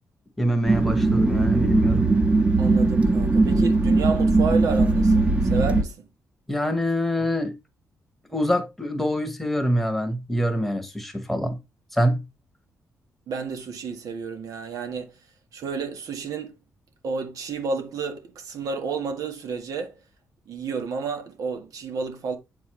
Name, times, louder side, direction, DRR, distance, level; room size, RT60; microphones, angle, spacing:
voice 1, 0.4-2.1 6.5-7.6 8.3-11.6 11.9-12.3, equal, 5° left, 1.3 m, -25 dB
sound 1, 0.6-5.8, right 3 dB, 20° right, 1.2 m, -20 dB
voice 2, 2.6-6.1 13.3-15.1 15.5-16.5 17.0-20.0 20.5-22.4, right 5 dB, 75° right, 1.6 m, -31 dB
7.9 x 4.5 x 3.2 m
cardioid pair, 115°, 6 cm